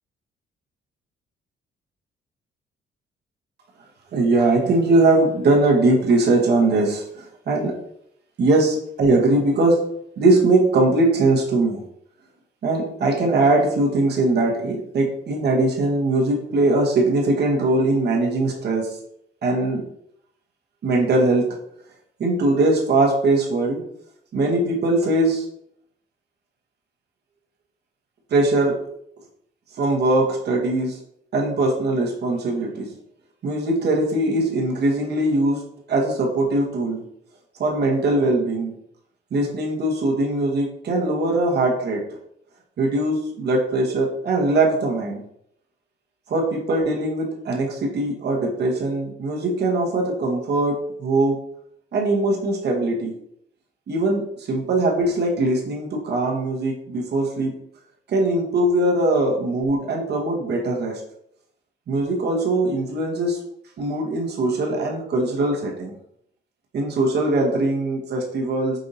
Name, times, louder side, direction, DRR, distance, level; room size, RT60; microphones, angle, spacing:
voice 1, 4.1-7.7 8.4-9.8 10.2-11.8 12.6-19.0 19.4-19.8 20.8-21.5 22.2-23.8 24.3-25.5 28.3-28.8 29.8-31.0 31.3-32.9 33.4-35.6 35.9-37.0 37.6-38.7 39.3-42.0 42.8-45.2 46.3-51.4 51.9-53.1 53.9-57.5 58.1-61.0 61.9-63.4 63.8-65.9 66.7-68.8, right 2 dB, 55° right, -1 dB, 1.1 m, -21 dB
4.9 x 2.7 x 2.7 m, 0.71 s
cardioid pair, 90°, 20 cm